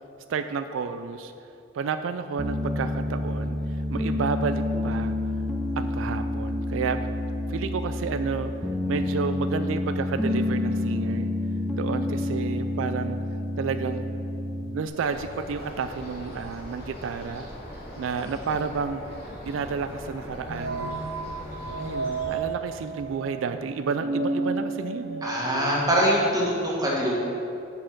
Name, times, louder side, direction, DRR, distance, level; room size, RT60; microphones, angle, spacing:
voice 1, 0.3-1.3 1.7-5.1 5.8-7.0 7.5-8.5 8.9-11.3 11.7-13.2 13.6-14.0 14.7-17.5 18.0-20.9 21.8-25.2, right 5 dB, 90° right, 10 dB, 0.3 m, -31 dB
Piano, 2.4-14.9, left 1 dB, ahead, 0.5 m, -28 dB
sound 1, 14.9-22.4, equal, 50° left, 2.2 m, -40 dB
sound 2, 20.5-26.1, right 3 dB, 60° right, 0.9 m, -32 dB
voice 2, 25.2-27.1, equal, 20° right, -4 dB, 1.6 m, -23 dB
9.5 x 4.5 x 5.9 m, 2.6 s
head